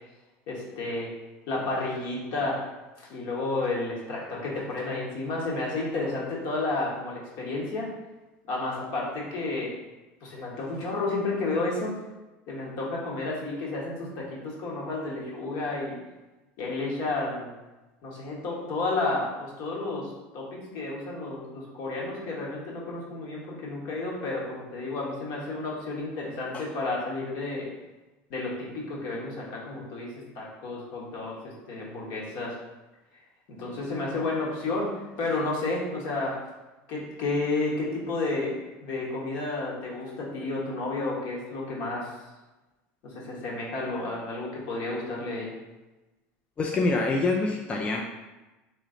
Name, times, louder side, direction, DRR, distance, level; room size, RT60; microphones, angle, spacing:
voice 1, 0.5-1.1 1.5-2.6 3.1-7.9 8.5-9.7 10.2-11.9 12.5-15.9 16.6-17.5 18.0-27.7 28.3-32.5 33.5-36.4 36.9-38.6 38.8-42.1 43.0-45.5, left 2 dB, 65° left, -3 dB, 1.3 m, -31 dB
voice 2, 46.6-48.0, left 3 dB, 25° left, 0 dB, 0.4 m, -25 dB
3.1 x 3.0 x 3.8 m, 1.1 s
supercardioid pair, 120°, 5 cm